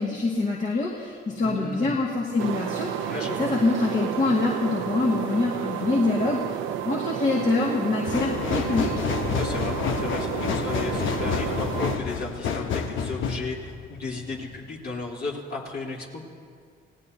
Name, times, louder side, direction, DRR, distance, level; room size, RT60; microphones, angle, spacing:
voice 1, 0.0-3.1 3.4-6.4 6.8-9.0, left 3 dB, 40° left, -4 dB, 2.1 m, -25 dB
voice 2, 1.4-2.0 3.1-3.6 9.4-16.2, left 3 dB, 55° left, -3 dB, 3.7 m, -34 dB
sound 1, 2.4-12.0, right 10 dB, 85° right, 0.8 m, -31 dB
sound 2, 8.0-14.6 15.0-15.1, left 6 dB, 80° left, 1.1 m, -29 dB
28.5 x 17.5 x 2.8 m, 2.1 s
cardioid pair, 90°, 20 cm